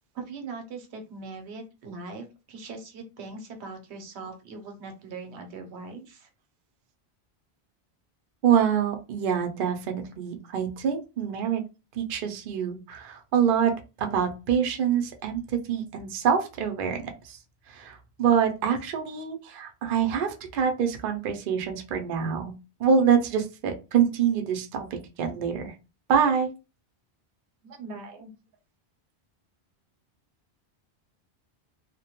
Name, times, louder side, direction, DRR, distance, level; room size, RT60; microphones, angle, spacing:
voice 1, 0.1-6.3 27.6-28.3, right 3 dB, 90° right, 5 dB, 0.9 m, -40 dB
voice 2, 8.4-11.6 12.0-17.4 17.7-22.5 22.8-24.9 25.2-25.7 26.1-26.5, right 7 dB, 60° right, 4 dB, 0.7 m, -25 dB
2.1 x 2.1 x 2.8 m, 0.29 s
omnidirectional pair, 1.1 m